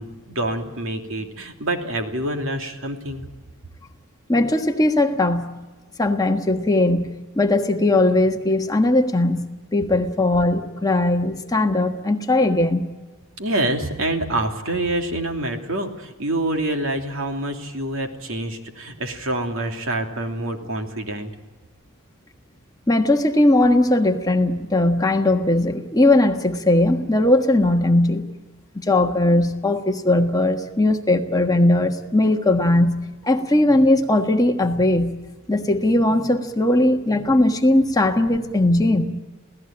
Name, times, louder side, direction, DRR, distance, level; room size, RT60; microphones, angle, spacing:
voice 1, 0.0-3.2 13.4-21.3, right 1 dB, 65° right, 4 dB, 2.9 m, -26 dB
voice 2, 4.3-5.5 6.0-7.1 7.3-9.4 9.7-12.9 22.9-28.3 28.7-33.0 33.2-35.1 35.5-39.1, left 1 dB, 15° left, 4 dB, 1.4 m, -19 dB
27.0 x 17.5 x 8.9 m, 1.2 s
head